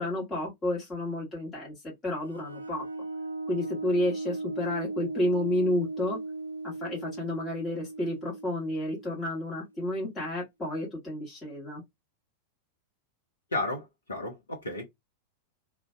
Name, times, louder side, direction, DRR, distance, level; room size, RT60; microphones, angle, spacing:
voice 1, 0.0-2.8 3.5-6.2 6.6-11.8, left 1 dB, 15° left, 1.2 m, -31 dB
sound 1, 2.2-9.7, right 2 dB, 80° right, 0.3 m, -37 dB
voice 2, 13.5-14.8, left 2 dB, 75° left, 0.7 m, -33 dB
2.5 x 2.2 x 2.2 m
figure-of-eight pair, 90°, 0 cm